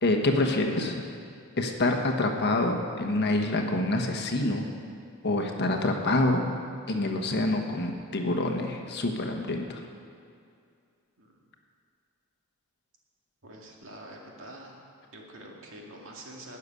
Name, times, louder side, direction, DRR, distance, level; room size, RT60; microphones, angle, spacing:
voice 1, 0.0-1.0 1.6-4.7 5.2-6.5 6.9-9.9, left 2 dB, 50° left, 3 dB, 1.2 m, -26 dB
voice 2, 13.4-14.8 15.1-16.6, right 1 dB, 60° right, -1 dB, 2.1 m, -46 dB
11.5 x 6.8 x 9.7 m, 2.3 s
head